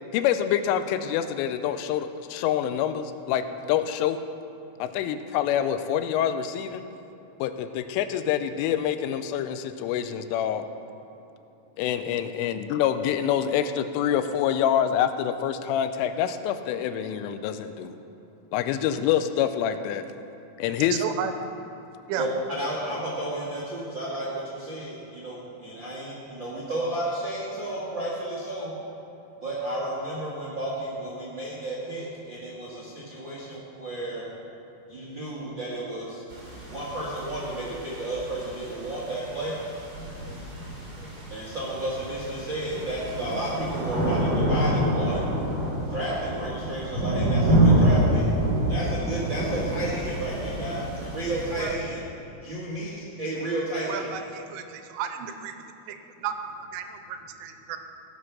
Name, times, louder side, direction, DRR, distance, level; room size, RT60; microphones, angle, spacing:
voice 1, 0.1-4.2 4.8-6.8 7.4-10.6 11.8-18.0 18.5-20.0 20.6-21.0, left 9 dB, 85° left, 10 dB, 3.1 m, -26 dB
voice 2, 20.9-21.3 22.1-22.3 51.6-51.7 53.9-55.5 55.9-56.4 56.7-57.8, right 9 dB, 90° right, 7 dB, 3.2 m, -33 dB
voice 3, 22.2-28.8 29.4-34.3 34.9-36.2 36.7-39.5 41.0-45.3 45.9-48.3 48.7-52.0 52.4-52.9 53.2-54.2, right 1 dB, 65° right, -7 dB, 1.1 m, -32 dB
sound 1, 36.3-51.7, right 1 dB, 30° right, 4.0 m, -27 dB
17.5 x 7.3 x 6.2 m, 2.9 s
omnidirectional pair, 5.7 m